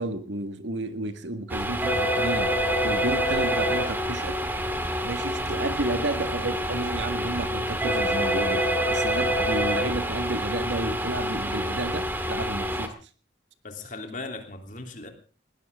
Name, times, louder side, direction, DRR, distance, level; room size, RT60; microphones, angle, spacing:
voice 1, 0.0-4.4 5.0-12.9, right 2 dB, 75° right, 9 dB, 1.8 m, -32 dB
sound 1, 1.5-12.9, equal, 10° right, 1.9 m, -27 dB
voice 2, 13.6-15.1, left 3 dB, 45° left, 5 dB, 3.2 m, -38 dB
20.5 x 16.5 x 3.7 m, 0.37 s
head